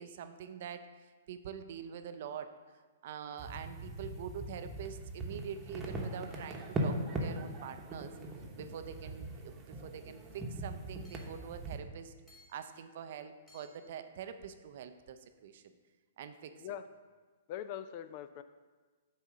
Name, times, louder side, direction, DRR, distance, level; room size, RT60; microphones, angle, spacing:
voice 1, 0.0-2.5 3.0-8.1 8.5-12.1 12.5-15.6 16.2-16.8, right 8 dB, 60° right, 9 dB, 0.5 m, -45 dB
sound 1, 3.4-11.8, right 1 dB, 15° right, 1.0 m, -40 dB
Hammer / Chink clink, 11.0-11.4 12.3-12.7 13.5-14.0, left 3 dB, 10° left, 1.6 m, -62 dB
voice 2, 17.5-18.4, left 10 dB, 45° left, 12 dB, 0.4 m, -42 dB
8.1 x 2.8 x 6.1 m, 1.4 s
hypercardioid pair, 125°, 0 cm